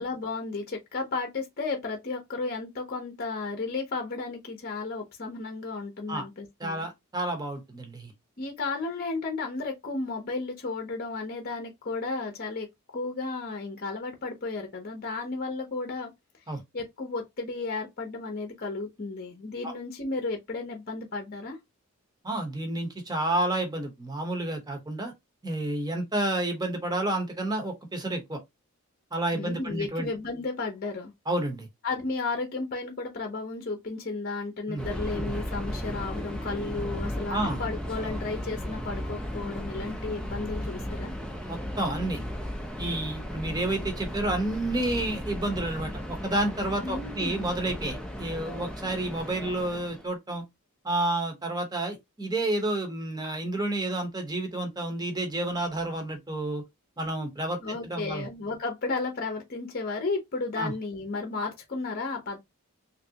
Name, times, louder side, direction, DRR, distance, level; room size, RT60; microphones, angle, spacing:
voice 1, 0.0-6.9 8.4-12.7 12.9-16.1 16.7-21.6 29.3-31.1 31.8-41.1 46.8-47.4 57.6-62.4, left 3 dB, 40° left, 0.7 m, -33 dB
voice 2, 6.6-8.1 16.5-16.6 19.6-19.7 22.2-25.1 25.4-28.4 29.1-30.1 31.3-31.7 34.7-34.9 35.3-35.4 37.3-37.6 41.5-42.2 42.8-50.4 50.8-56.6 57.0-58.3 60.6-60.7, right 1 dB, 20° right, 0.8 m, -30 dB
Subway metro underground, 34.8-50.1, equal, 5° left, 0.4 m, -35 dB
3.2 x 2.6 x 2.7 m
head